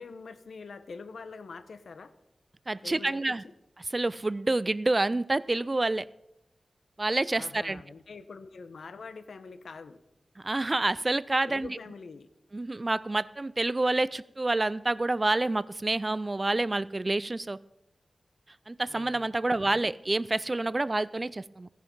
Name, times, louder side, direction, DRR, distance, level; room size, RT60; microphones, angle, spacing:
voice 1, 0.0-2.1 2.8-3.5 7.3-10.0 11.4-12.3 18.9-19.4, left 4 dB, 85° left, 11 dB, 1.0 m, -45 dB
voice 2, 2.7-3.4 3.9-6.1 7.0-7.8 10.4-11.8 12.5-17.6 18.7-21.7, right 2 dB, 25° right, 19 dB, 0.4 m, -28 dB
16.5 x 10.5 x 5.4 m, 0.87 s
wide cardioid pair, 120°, 0 cm